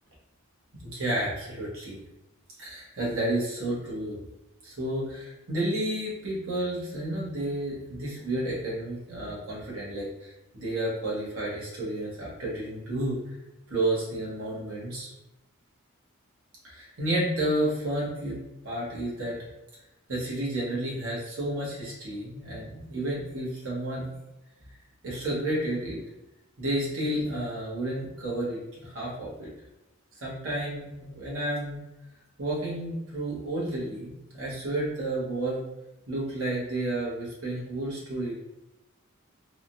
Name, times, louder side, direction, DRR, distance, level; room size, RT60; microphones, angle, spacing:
voice 1, 0.8-2.0 2.6-4.2 4.6-13.3 13.7-15.1 16.6-19.4 20.1-24.1 25.0-26.0 26.6-29.5 30.2-31.8 32.4-35.6 36.1-38.3, right 1 dB, 80° right, -6 dB, 1.2 m, -31 dB
3.5 x 2.3 x 2.6 m, 0.95 s
head